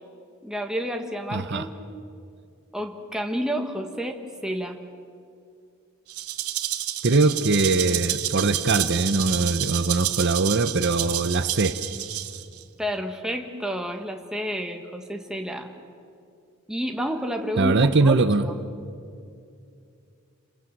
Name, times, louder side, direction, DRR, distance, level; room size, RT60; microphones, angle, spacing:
voice 1, 0.4-1.8 2.7-4.8 12.8-15.7 16.7-18.6, equal, 5° right, 3 dB, 1.5 m, -30 dB
voice 2, 1.3-1.7 7.0-11.8 17.6-18.5, right 3 dB, 55° right, 11 dB, 0.8 m, -21 dB
Rattle (instrument), 6.1-12.6, right 13 dB, 90° right, 1.2 m, -29 dB
29.0 x 20.0 x 7.5 m, 2.5 s
head